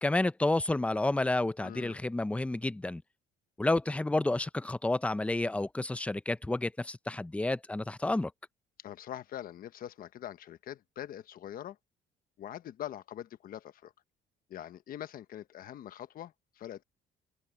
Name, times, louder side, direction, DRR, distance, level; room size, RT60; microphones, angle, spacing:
voice 1, 0.0-3.0 3.6-8.3, left 2 dB, 5° left, 0.6 m, -30 dB
voice 2, 1.6-2.0 8.8-11.8 12.4-13.9 14.5-16.8, left 11 dB, 60° left, 1.1 m, -43 dB
open air
cardioid pair, 110°, 17 cm